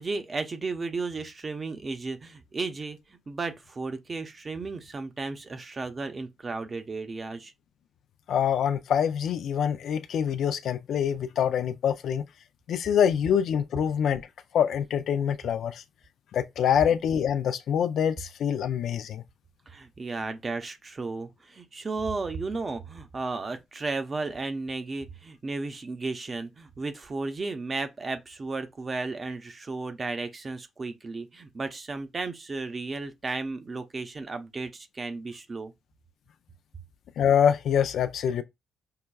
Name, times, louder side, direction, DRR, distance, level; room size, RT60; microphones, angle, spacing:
voice 1, 0.0-7.5 19.7-35.7, right 3 dB, 40° right, 0.7 m, -34 dB
voice 2, 8.3-12.2 12.7-14.2 14.5-15.8 16.3-19.2 37.2-38.4, left 8 dB, 70° left, 0.4 m, -25 dB
5.6 x 2.2 x 2.3 m
supercardioid pair, 50°, 0 cm